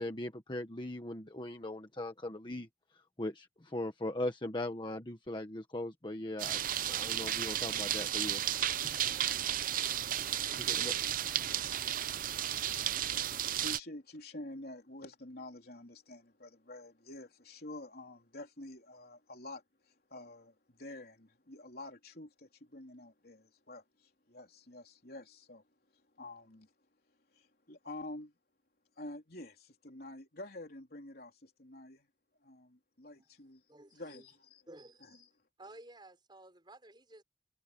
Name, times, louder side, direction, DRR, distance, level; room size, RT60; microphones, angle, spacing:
voice 1, 0.0-2.7 3.2-6.6 6.8-8.8 10.6-10.9 11.5-11.6, left 1 dB, 25° left, 1.4 m, -39 dB
sound 1, 6.4-13.8, right 11 dB, 50° right, 0.6 m, -33 dB
voice 2, 13.6-25.6 25.9-26.7 27.3-28.3 29.0-32.1 32.4-33.6 33.9-34.6 35.0-35.2, left 1 dB, 60° left, 3.9 m, -48 dB
voice 3, 33.7-34.3 34.7-35.3 35.6-37.2, right 1 dB, 25° right, 6.3 m, -55 dB
open air
head